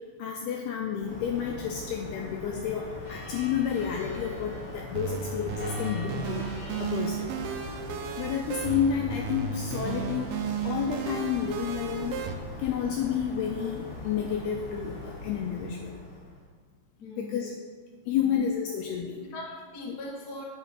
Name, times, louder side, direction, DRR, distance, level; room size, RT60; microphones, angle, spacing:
voice 1, 0.2-7.3 8.2-10.4 10.6-12.2 12.6-16.0 17.2-17.5 18.1-19.2 19.9-20.0, left 8 dB, 80° left, 1 dB, 2.4 m, -30 dB
sound 1, 1.0-16.4, left 2 dB, 25° left, 3.2 m, -41 dB
sound 2, 4.9-12.3, right 6 dB, 85° right, 2.2 m, -34 dB
voice 2, 17.0-17.5 18.1-18.4 19.1-20.4, left 1 dB, 45° left, -3 dB, 1.3 m, -41 dB
11.0 x 6.2 x 5.9 m, 1.5 s
omnidirectional pair, 5.2 m